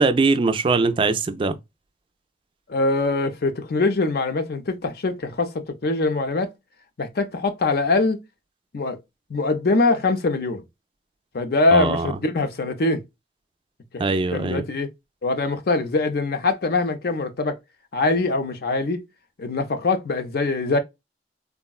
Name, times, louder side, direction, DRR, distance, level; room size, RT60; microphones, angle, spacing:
voice 1, 0.0-1.6 11.7-12.1 14.0-14.6, right 3 dB, 30° right, 0.3 m, -21 dB
voice 2, 2.7-6.5 7.0-8.2 8.7-9.0 9.3-10.6 11.3-13.0 13.9-14.9 15.2-17.6 17.9-19.1 19.4-20.8, left 3 dB, 60° left, 0.5 m, -23 dB
3.6 x 2.1 x 2.3 m
head